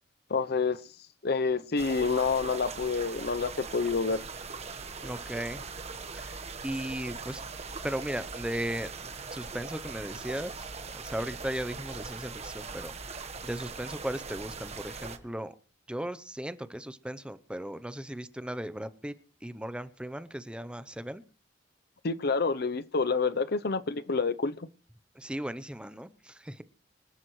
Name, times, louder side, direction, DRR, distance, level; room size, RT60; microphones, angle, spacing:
voice 1, 0.3-0.8 1.2-4.2 22.0-24.5, left 4 dB, 55° left, 0.7 m, -28 dB
sound 1, 1.8-15.2, right 4 dB, 35° right, 1.4 m, -41 dB
voice 2, 5.0-5.7 6.1-7.4 7.8-8.9 9.3-15.5 15.9-19.1 19.4-21.2 25.2-26.6, right 1 dB, 5° right, 0.7 m, -37 dB
26.5 x 12.5 x 3.2 m
head